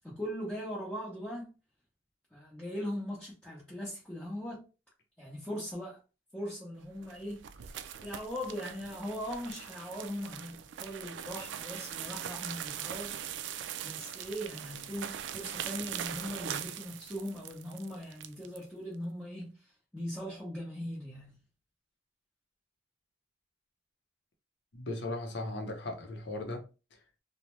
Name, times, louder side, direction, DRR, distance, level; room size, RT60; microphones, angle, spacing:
voice 1, 0.0-1.5 2.3-4.6 5.2-6.0 6.3-13.4 13.8-21.4, equal, 10° left, 0.9 m, -40 dB
sound 1, 6.9-18.6, right 9 dB, 75° right, 0.3 m, -41 dB
voice 2, 24.7-27.2, left 2 dB, 70° left, 0.7 m, -38 dB
2.7 x 2.1 x 3.0 m
head